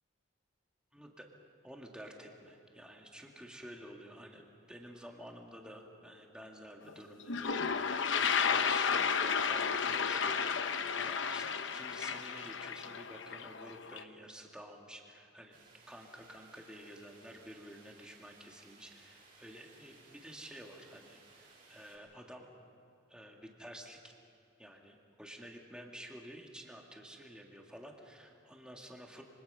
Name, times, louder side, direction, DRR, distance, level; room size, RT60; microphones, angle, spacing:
voice 1, 0.9-1.3 1.6-10.6 10.9-15.6 15.9-22.5 23.1-24.1 24.6-29.2, equal, 5° right, 0 dB, 1.9 m, -51 dB
Toilet flush, 6.9-7.0 7.2-14.0, left 6 dB, 65° left, 0.9 m, -33 dB
sound 1, 15.5-22.0, right 3 dB, 45° right, 7.1 m, -61 dB
26.0 x 24.5 x 5.6 m, 2.8 s
head